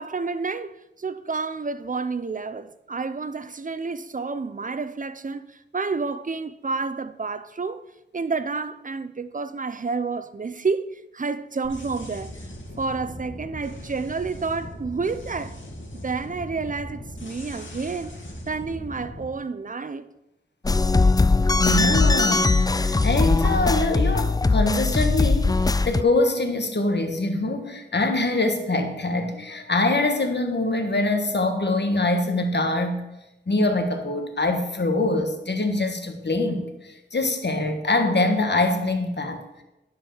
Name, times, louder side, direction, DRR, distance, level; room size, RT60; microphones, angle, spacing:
voice 1, 0.0-7.8 8.1-12.5 12.8-15.6 15.9-18.2 18.5-20.1, right 4 dB, 45° right, 0.6 m, -30 dB
sound 1, 11.6-19.3, left 1 dB, 90° left, 2.1 m, -39 dB
sound 2, 20.6-26.0, left 3 dB, 20° left, 0.3 m, -20 dB
voice 2, 21.6-25.6 25.8-33.0 33.5-39.4, left 2 dB, 65° left, 1.4 m, -24 dB
10.5 x 4.7 x 7.3 m
wide cardioid pair, 45°, 19 cm